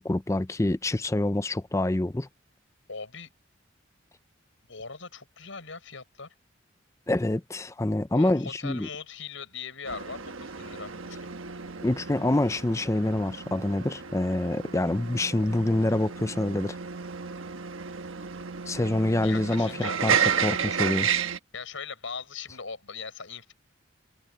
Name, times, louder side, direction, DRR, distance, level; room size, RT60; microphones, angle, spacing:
voice 1, 0.0-2.3 7.1-8.9 11.8-16.8 18.6-20.2 20.4-21.1, left 1 dB, 15° left, 0.5 m, -26 dB
voice 2, 2.9-3.3 4.7-6.3 8.1-11.3 19.2-20.0 20.6-20.7 21.5-23.5, left 5 dB, 75° left, 4.8 m, -40 dB
sound 1, 9.9-21.4, right 7 dB, 80° right, 1.2 m, -32 dB
head